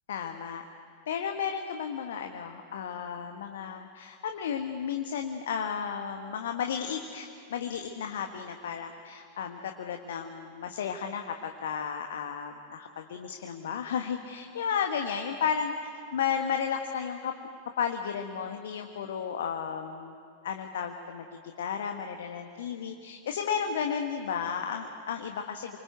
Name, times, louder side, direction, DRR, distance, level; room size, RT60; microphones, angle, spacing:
voice 1, 0.1-0.6 1.1-15.7 16.1-17.3 17.8-20.2 20.4-21.3 21.6-25.8, left 7 dB, 60° left, 5 dB, 1.4 m, -33 dB
28.0 x 25.0 x 8.1 m, 2.5 s
figure-of-eight pair, 90°, 0 cm